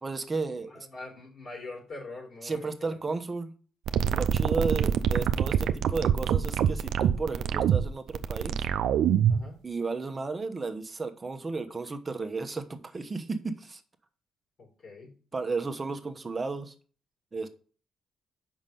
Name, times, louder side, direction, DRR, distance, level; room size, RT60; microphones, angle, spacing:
voice 1, 0.0-0.9 2.4-3.5 4.0-8.6 9.6-13.8 15.3-16.7 17.3-17.5, right 3 dB, 25° right, 7 dB, 1.0 m, -33 dB
voice 2, 0.7-2.7 9.3-9.6 14.6-15.1, left 3 dB, 60° left, -1 dB, 4.0 m, -43 dB
sound 1, 3.9-9.5, right 9 dB, 75° right, 0.5 m, -25 dB
6.0 x 5.5 x 5.3 m, 0.41 s
cardioid pair, 90°, 0 cm